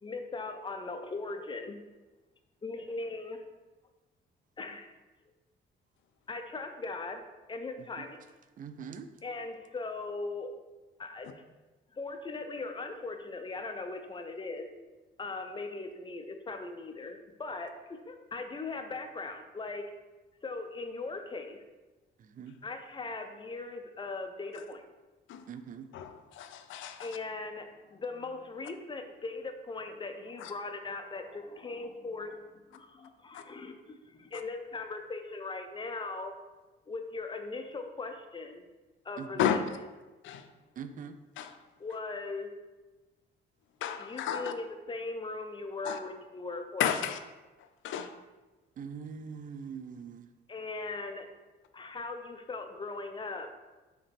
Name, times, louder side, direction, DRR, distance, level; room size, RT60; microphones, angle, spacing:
voice 1, 0.0-1.8 2.6-3.4 4.6-4.9 6.3-7.2 7.5-8.2 9.2-10.5 11.0-11.4 11.9-14.7 15.2-19.8 20.4-21.6 22.6-24.8 27.0-36.3 36.9-38.6 39.0-39.8 41.8-42.5 44.0-46.8 50.5-51.3 51.7-53.5, left 3 dB, 25° left, 6 dB, 0.5 m, -39 dB
voice 2, 8.6-9.1 22.2-22.6 25.5-25.9 39.2-39.3 40.8-41.2 48.8-50.3, right 6 dB, 40° right, 10 dB, 0.4 m, -42 dB
voice 3, 25.9-27.1 30.4-30.5 33.3-33.4 39.4-39.6 40.2-40.4 41.4-41.5 43.8-44.5 45.8-46.0 46.8-47.2 47.8-48.1, left 9 dB, 75° left, 8 dB, 0.4 m, -32 dB
4.9 x 3.1 x 3.4 m, 1.2 s
cardioid pair, 90°, 20 cm